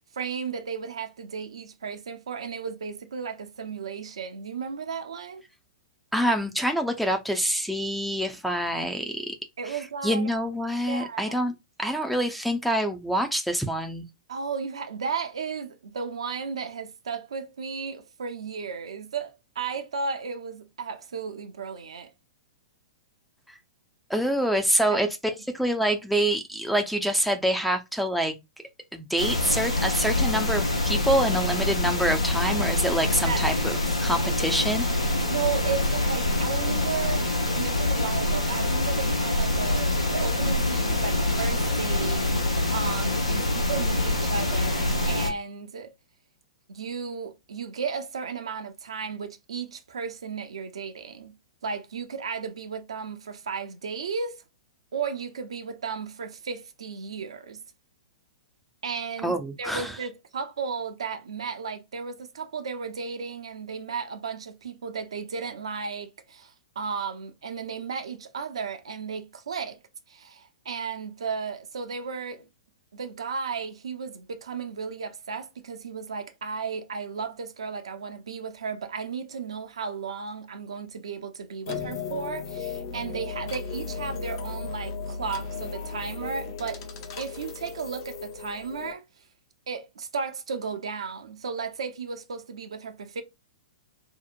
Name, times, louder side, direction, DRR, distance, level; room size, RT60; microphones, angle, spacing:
voice 1, 0.1-5.4 9.6-10.3 10.9-11.4 14.3-22.1 24.9-25.0 33.3-33.6 35.3-45.9 46.7-51.4 51.6-54.4 54.9-57.6 58.8-69.8 70.1-72.5 72.9-86.8 87.2-89.0 89.7-93.2, right 5 dB, 70° right, 0.5 m, -34 dB
voice 2, 6.1-9.3 9.7-9.8 10.0-11.5 11.8-14.0 24.1-28.4 28.9-34.8 59.2-59.9, right 1 dB, ahead, 0.4 m, -26 dB
sound 1, 29.2-45.3, left 2 dB, 85° left, 0.7 m, -25 dB
sound 2, 81.7-88.9, left 5 dB, 50° left, 0.6 m, -35 dB
2.7 x 2.0 x 2.5 m
figure-of-eight pair, 105°, 3 cm